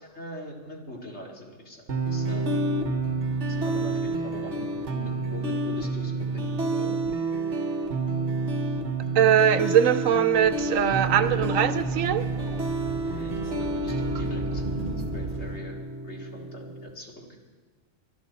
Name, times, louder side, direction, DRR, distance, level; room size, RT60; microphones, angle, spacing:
voice 1, 0.0-2.4 3.6-7.0 13.0-14.6 15.1-15.8 16.0-17.3, left 1 dB, 55° left, 0 dB, 2.6 m, -41 dB
sound 1, 1.9-16.9, right 2 dB, 60° right, 1.4 m, -29 dB
voice 2, 9.1-12.3, right 9 dB, 75° right, 12 dB, 1.1 m, -21 dB
sound 2, 10.3-15.6, right 2 dB, 40° right, 1.4 m, -37 dB
25.0 x 11.5 x 4.2 m, 1.4 s
omnidirectional pair, 1.4 m